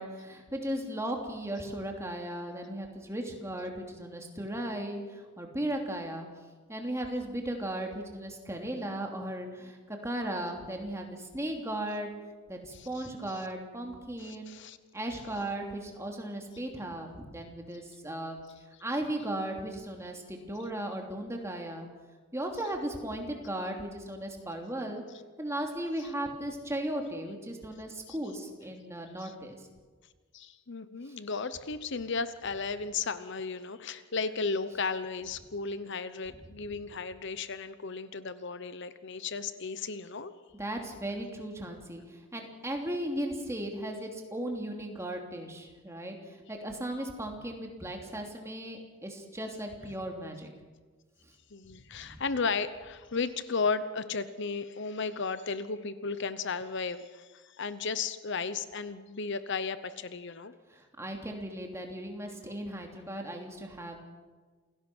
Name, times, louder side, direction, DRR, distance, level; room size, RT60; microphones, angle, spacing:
voice 1, 0.0-6.3 6.7-12.1 12.5-14.6 14.9-18.4 18.8-21.9 22.3-25.0 25.4-29.7 31.1-31.2 36.5-36.6 40.5-50.5 51.7-52.2 60.7-64.0, right 1 dB, 15° right, 2 dB, 3.1 m, -36 dB
voice 2, 12.7-13.1 14.2-14.8 28.1-28.2 29.2-29.3 30.3-40.3 51.5-60.5, left 4 dB, 60° left, 13 dB, 0.9 m, -34 dB
28.0 x 17.0 x 6.2 m, 1.4 s
head